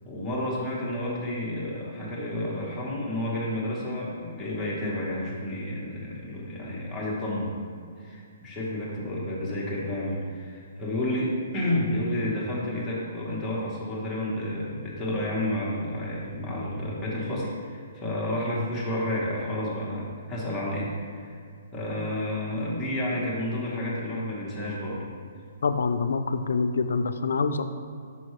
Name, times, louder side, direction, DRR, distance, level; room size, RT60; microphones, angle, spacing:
voice 1, 0.0-7.6 8.0-21.3 21.7-25.1, left 1 dB, 5° left, -8 dB, 1.1 m, -30 dB
voice 2, 25.6-27.6, left 4 dB, 80° left, 10 dB, 0.4 m, -25 dB
6.0 x 5.6 x 3.2 m, 2.3 s
hypercardioid pair, 165°, 0 cm